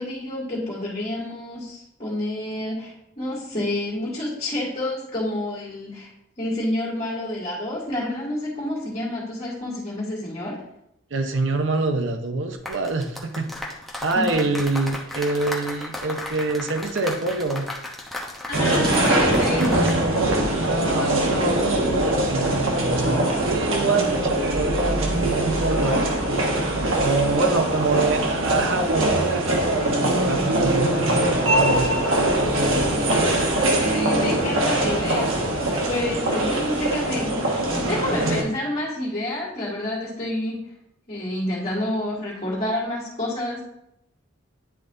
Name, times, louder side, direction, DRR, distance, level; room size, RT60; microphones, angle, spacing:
voice 1, 0.0-6.1 6.4-10.6 14.1-14.4 18.4-19.8 33.9-35.5 35.9-40.6 41.1-43.6, left 1 dB, 30° left, -7 dB, 2.3 m, -29 dB
voice 2, 11.1-13.5 14.0-17.6 20.6-26.1 26.4-31.9, right 3 dB, 65° right, 5 dB, 0.7 m, -26 dB
sound 1, 12.5-20.0 20.3-20.5, left 1 dB, ahead, 1.0 m, -35 dB
sound 2, 18.5-38.4, right 1 dB, 80° right, 1.3 m, -22 dB
10.0 x 4.0 x 3.8 m, 0.80 s
head